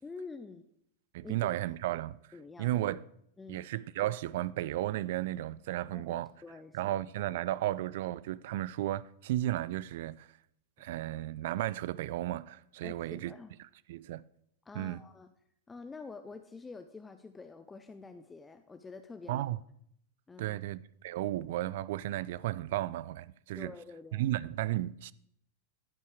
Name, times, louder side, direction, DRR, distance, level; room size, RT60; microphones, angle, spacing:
voice 1, 0.0-0.6 1.2-1.6 2.3-2.7 3.4-3.6 5.9-6.2 6.4-6.9 12.8-13.5 14.6-15.3 15.7-19.5 20.3-20.6 23.6-24.3, left 4 dB, 10° left, 0.6 m, -47 dB
voice 2, 1.1-2.2 2.6-3.1 3.5-6.3 6.7-10.3 10.8-13.3 13.9-14.2 14.7-15.0 19.3-19.6 20.4-23.7 24.1-25.1, right 14 dB, 55° right, 0.3 m, -34 dB
14.5 x 5.5 x 4.8 m
figure-of-eight pair, 90°, 0 cm